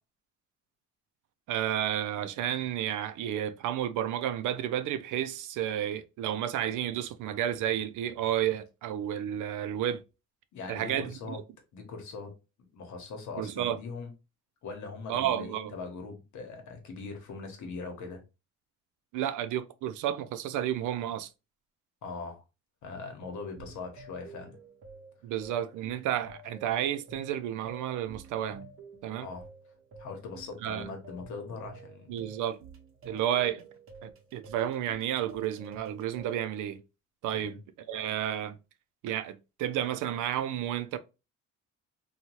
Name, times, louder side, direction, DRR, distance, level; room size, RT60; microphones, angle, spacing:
voice 1, 1.5-10.0 10.7-11.4 13.4-13.8 15.1-15.7 19.1-21.3 25.2-28.7 29.0-29.3 30.6-30.9 32.1-32.6 33.0-33.7 34.0-36.8 37.2-37.6 37.9-38.6 39.0-41.0, right 11 dB, 80° right, 0.5 m, -31 dB
voice 2, 10.5-11.4 11.7-12.3 12.7-14.1 14.6-18.2 22.0-22.4 22.8-24.5 29.2-29.5 30.0-32.3 37.3-37.6, left 4 dB, 75° left, 1.0 m, -41 dB
sound 1, 23.2-36.4, right 3 dB, 45° right, 0.7 m, -51 dB
2.7 x 2.3 x 3.0 m
cardioid pair, 90°, 30 cm